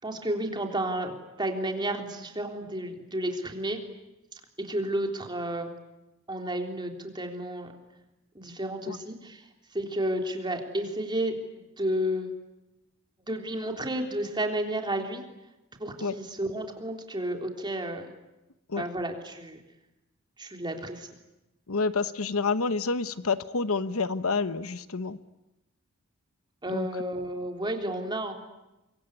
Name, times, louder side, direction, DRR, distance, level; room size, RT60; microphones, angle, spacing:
voice 1, 0.0-3.8 4.3-5.7 6.3-7.7 8.4-9.5 9.7-11.3 11.8-12.3 13.2-15.2 15.8-18.1 18.8-19.6 20.4-21.1 26.6-28.3, right 1 dB, 20° right, 3 dB, 3.5 m, -31 dB
voice 2, 21.7-25.2 26.7-26.9, left 4 dB, 80° left, 13 dB, 1.0 m, -28 dB
25.0 x 24.0 x 9.7 m, 0.97 s
head